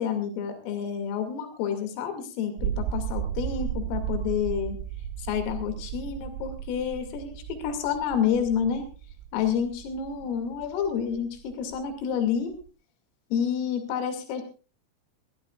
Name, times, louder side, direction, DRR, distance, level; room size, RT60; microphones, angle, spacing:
voice 1, 0.0-4.8 5.2-8.8 9.3-12.5 13.3-14.4, left 8 dB, 80° left, 6 dB, 5.1 m, -29 dB
sound 1, 2.6-12.7, right 9 dB, 85° right, 3.5 m, -35 dB
22.5 x 15.5 x 2.4 m, 0.35 s
omnidirectional pair, 5.9 m